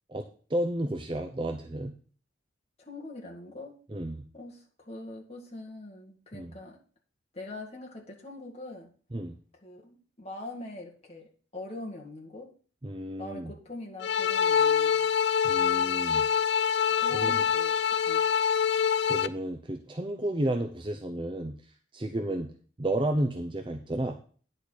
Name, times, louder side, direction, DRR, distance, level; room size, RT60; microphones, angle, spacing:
voice 1, 0.1-1.9 3.9-4.2 6.3-6.5 9.1-9.3 12.8-13.5 15.4-16.2 17.1-17.3 19.1-21.5 21.9-22.5 22.8-24.2, right 1 dB, 25° right, 3 dB, 0.6 m, -32 dB
voice 2, 2.8-3.8 4.3-6.8 7.3-8.9 9.6-12.5 13.2-15.1 17.0-17.7 18.0-18.2, left 2 dB, 35° left, -1 dB, 1.9 m, -43 dB
sound 1, 14.0-19.3, left 7 dB, 60° left, 0.4 m, -25 dB
10.0 x 4.4 x 6.5 m, 0.42 s
head